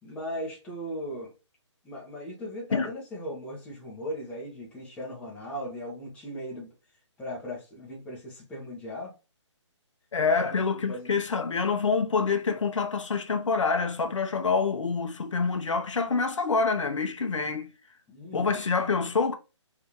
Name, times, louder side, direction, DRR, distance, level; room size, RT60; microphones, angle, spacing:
voice 1, 0.0-1.3 1.8-6.7 7.2-9.1 10.4-11.1 18.1-18.6, equal, 10° left, 1.3 m, -38 dB
voice 2, 10.1-17.7 18.3-19.3, left 4 dB, 75° left, 0.9 m, -26 dB
3.5 x 3.4 x 2.9 m
hypercardioid pair, 160°, 16 cm